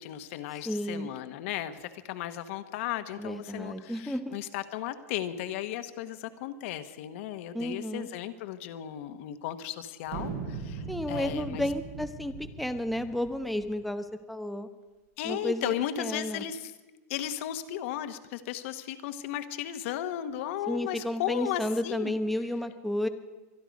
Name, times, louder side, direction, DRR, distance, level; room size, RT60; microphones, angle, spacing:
voice 1, 0.0-11.6 15.2-16.7 17.1-22.1, left 11 dB, 55° left, 9 dB, 1.1 m, -35 dB
voice 2, 0.6-1.1 3.2-4.4 7.5-8.1 10.9-14.7 15.2-16.4 20.7-23.1, left 1 dB, ahead, 8 dB, 0.8 m, -32 dB
sound 1, 10.1-13.7, right 5 dB, 65° right, 3.8 m, -39 dB
24.5 x 11.0 x 5.2 m, 1.2 s
supercardioid pair, 150°, 8 cm